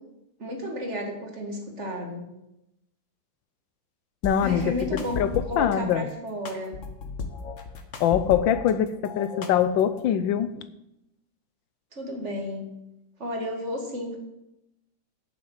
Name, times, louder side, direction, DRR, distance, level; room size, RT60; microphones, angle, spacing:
voice 1, 0.4-2.3 4.4-5.2 5.5-6.8 12.0-12.7 13.2-14.2, left 1 dB, 40° right, 2.1 m, -32 dB
voice 2, 4.2-6.1 8.0-10.6, left 9 dB, 85° left, 1.4 m, -24 dB
sound 1, 4.2-5.8 6.5-8.7 9.0-10.0, left 4 dB, 45° left, 1.3 m, -35 dB
8.8 x 7.4 x 7.5 m
omnidirectional pair, 2.0 m